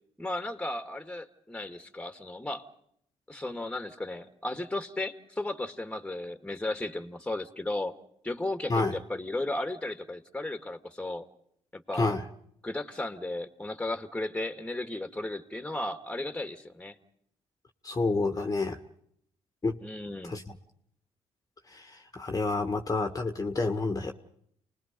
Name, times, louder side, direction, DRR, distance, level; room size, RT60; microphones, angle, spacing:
voice 1, 0.2-2.6 3.3-7.9 8.2-11.3 11.7-12.2 12.6-17.0 19.8-20.4, left 2 dB, 10° left, 8 dB, 1.9 m, -35 dB
voice 2, 17.8-18.8 19.6-19.8 20.2-20.4 21.7-24.1, left 3 dB, 25° left, 6 dB, 1.6 m, -29 dB
28.5 x 20.0 x 5.3 m, 0.68 s
cardioid pair, 70°, 12 cm